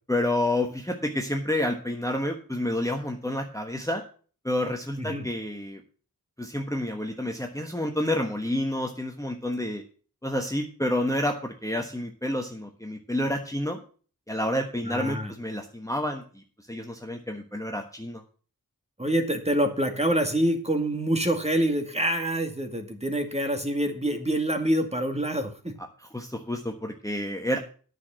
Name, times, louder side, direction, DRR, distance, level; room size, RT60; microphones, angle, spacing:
voice 1, 0.1-4.0 4.4-5.8 6.4-9.8 10.2-13.8 14.3-16.4 16.7-18.2 26.0-27.6, left 1 dB, 10° left, 3 dB, 1.3 m, -29 dB
voice 2, 14.8-15.3 19.0-25.7, right 1 dB, 15° right, 5 dB, 2.1 m, -26 dB
9.6 x 6.4 x 7.5 m, 0.40 s
wide cardioid pair, 50°, 36 cm